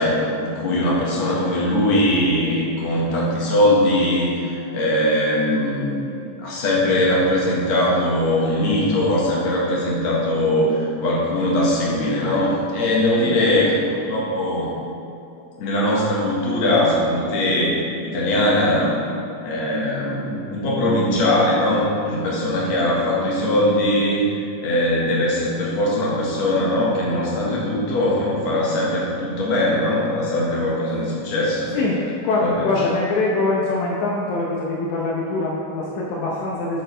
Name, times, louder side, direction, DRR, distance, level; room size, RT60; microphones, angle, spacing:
voice 1, 0.0-14.7 15.6-19.0 19.4-31.7 32.4-32.7, left 1 dB, 65° left, -5 dB, 2.8 m, -21 dB
voice 2, 13.2-13.8 31.7-36.8, left 3 dB, 85° left, -4 dB, 2.3 m, -23 dB
9.4 x 7.8 x 3.3 m, 2.6 s
omnidirectional pair, 3.3 m